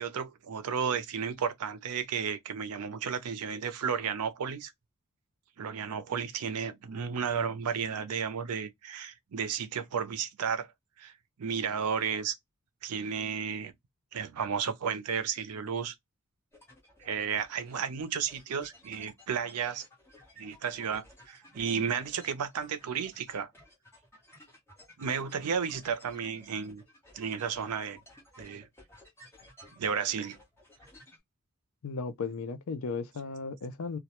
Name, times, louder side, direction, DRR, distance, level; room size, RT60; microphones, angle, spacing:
voice 1, 0.0-4.7 5.6-10.7 11.0-11.1 11.4-12.3 12.8-13.7 14.1-15.9 17.0-19.8 20.4-23.5 25.0-26.8 27.1-28.0 28.4-28.7 29.8-30.4, right 6 dB, 85° right, 0.5 m, -33 dB
sound 1, 16.5-31.2, left 1 dB, 10° left, 0.9 m, -56 dB
voice 2, 31.8-34.0, left 4 dB, 65° left, 0.4 m, -35 dB
2.2 x 2.1 x 2.8 m
head